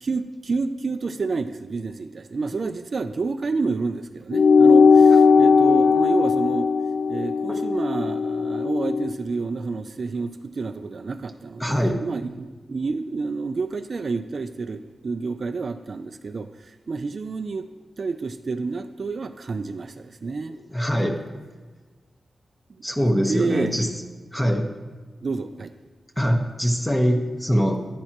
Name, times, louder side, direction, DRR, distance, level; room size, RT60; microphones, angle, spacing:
voice 1, 0.0-6.7 7.1-17.7 18.0-20.6 23.3-23.8 25.2-25.7, right 4 dB, 50° right, 10 dB, 0.4 m, -29 dB
sound 1, 4.3-9.1, left 5 dB, 80° left, 0.4 m, -17 dB
voice 2, 11.6-12.0 20.7-21.2 22.8-23.9 24.3-24.7 26.2-27.9, equal, 10° left, 4 dB, 1.0 m, -22 dB
10.5 x 10.0 x 3.0 m, 1.4 s
wide cardioid pair, 105°, 0 cm